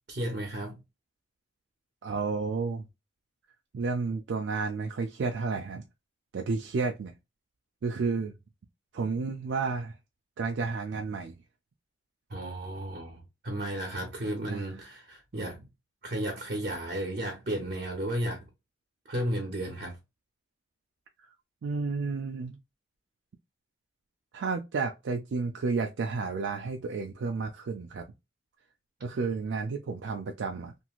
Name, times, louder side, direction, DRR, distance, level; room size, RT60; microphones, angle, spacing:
voice 1, 0.1-0.8 12.3-15.6 16.0-18.5 19.1-20.0 29.1-29.2, right 1 dB, 50° right, 0.8 m, -34 dB
voice 2, 2.0-2.8 3.7-5.8 6.3-7.1 7.8-8.3 8.9-10.0 10.4-11.4 14.5-14.6 21.6-22.6 24.3-28.0 29.0-30.7, right 4 dB, 70° right, 0.4 m, -31 dB
2.9 x 2.6 x 2.3 m
head